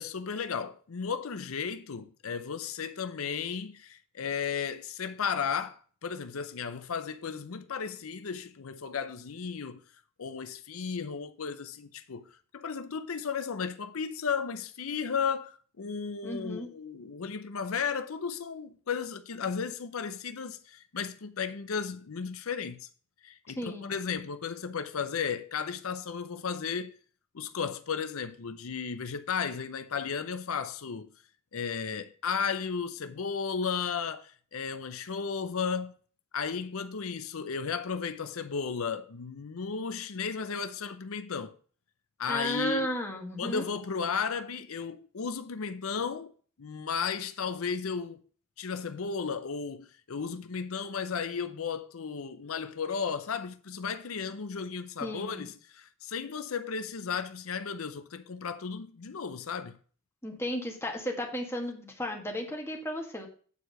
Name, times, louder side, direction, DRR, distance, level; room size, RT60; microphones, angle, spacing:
voice 1, 0.0-9.8 10.2-22.9 23.2-27.0 27.3-31.1 31.5-35.9 36.3-41.6 42.2-42.9 43.4-46.3 46.6-48.2 48.6-59.8, left 6 dB, 85° left, 0.7 m, -34 dB
voice 2, 16.2-16.7 23.6-24.0 42.3-43.7 55.0-55.4 60.2-63.3, equal, 10° left, 1.7 m, -34 dB
8.4 x 4.7 x 5.5 m
head